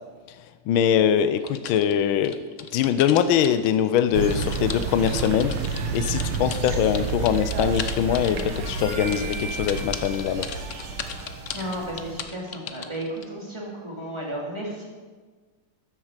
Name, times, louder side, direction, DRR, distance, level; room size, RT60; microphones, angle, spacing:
voice 1, 0.7-2.4 2.7-5.5 5.9-10.5, left 9 dB, 80° left, 11 dB, 1.4 m, -22 dB
sound 1, 1.5-3.7 4.0-13.2, left 7 dB, 60° left, 0.8 m, -36 dB
sound 2, 4.1-12.2, right 5 dB, 85° right, 2.1 m, -30 dB
Harmonica, 8.5-13.0, right 3 dB, 45° right, 4.1 m, -40 dB
voice 2, 11.5-14.8, right 1 dB, 15° right, -3 dB, 3.0 m, -33 dB
14.0 x 10.5 x 5.1 m, 1.4 s
omnidirectional pair, 2.3 m